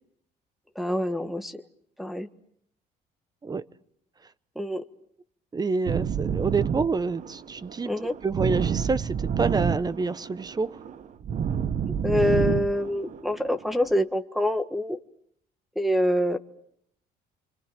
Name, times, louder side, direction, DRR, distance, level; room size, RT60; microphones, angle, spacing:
voice 1, 0.7-1.6 2.0-2.3 4.5-4.8 7.9-8.1 12.0-15.0 15.7-16.4, left 1 dB, ahead, 1.5 m, -25 dB
voice 2, 5.5-7.9 8.2-10.8, right 4 dB, 25° right, 1.0 m, -27 dB
sound 1, 5.9-13.9, right 7 dB, 45° right, 1.2 m, -29 dB
29.0 x 25.0 x 7.7 m
cardioid pair, 110°, 17 cm